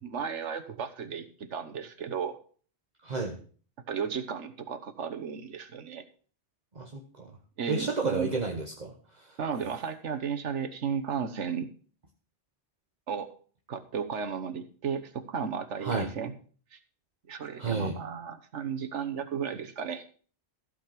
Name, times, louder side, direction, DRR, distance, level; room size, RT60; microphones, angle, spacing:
voice 1, 0.0-1.2 1.5-2.4 3.9-6.0 7.6-8.3 9.4-11.7 13.1-13.3 13.7-16.3 16.7-16.8 17.3-20.0, right 7 dB, 90° right, 9 dB, 1.4 m, -34 dB
voice 2, 3.0-3.4 6.7-7.4 7.7-9.4 15.8-16.1 17.6-18.0, right 4 dB, 40° right, 1 dB, 1.3 m, -32 dB
15.0 x 5.3 x 5.9 m, 0.43 s
omnidirectional pair, 1.2 m